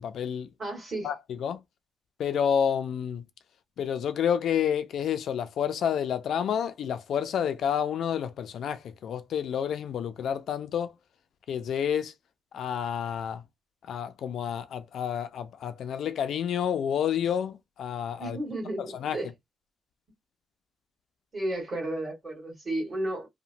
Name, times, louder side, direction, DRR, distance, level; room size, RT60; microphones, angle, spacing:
voice 1, 0.0-0.5 1.0-1.6 2.2-3.2 3.8-10.9 11.5-12.1 12.5-13.4 13.8-18.4 18.8-19.2, left 8 dB, 60° left, 0.3 m, -29 dB
voice 2, 0.6-1.1 18.2-18.8 19.1-19.3 21.3-23.3, right 1 dB, 25° right, 1.6 m, -32 dB
2.8 x 2.1 x 2.6 m
wide cardioid pair, 175°, 0 cm